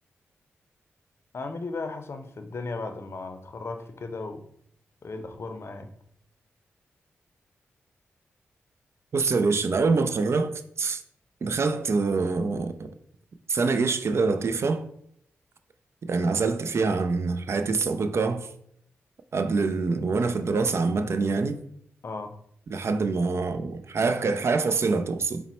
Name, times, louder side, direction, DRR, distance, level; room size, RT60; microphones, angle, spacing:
voice 1, 1.3-4.5 5.0-5.9 22.0-22.4, left 3 dB, 55° left, 0.5 m, -36 dB
voice 2, 9.1-11.0 11.4-12.9 13.5-14.9 16.1-18.5 19.3-21.6 22.7-25.4, right 4 dB, 55° right, 0.4 m, -25 dB
4.1 x 2.1 x 4.2 m
supercardioid pair, 45°, 5 cm